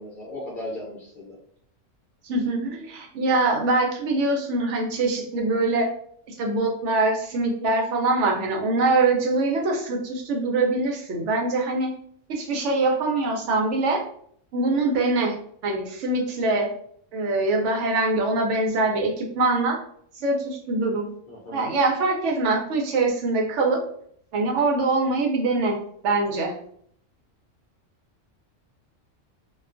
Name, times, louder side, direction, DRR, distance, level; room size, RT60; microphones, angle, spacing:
voice 1, 0.0-1.3 21.3-21.7, left 1 dB, 50° left, -6 dB, 0.7 m, -36 dB
voice 2, 2.2-5.9 6.3-11.9 12.3-14.0 14.5-15.3 15.6-16.7 17.1-19.8 20.1-21.1 21.5-23.8 24.3-25.8 26.0-26.6, right 2 dB, 70° right, 1 dB, 0.9 m, -23 dB
2.3 x 2.2 x 2.4 m, 0.63 s
omnidirectional pair, 1.3 m